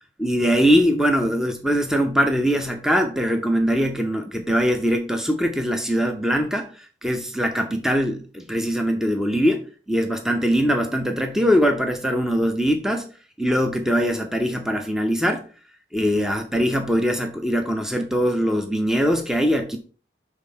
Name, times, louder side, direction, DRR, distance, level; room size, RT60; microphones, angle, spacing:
voice 1, 0.2-13.1 13.4-15.5 15.9-19.8, equal, 5° right, 0.5 m, -22 dB
5.9 x 3.6 x 5.5 m
head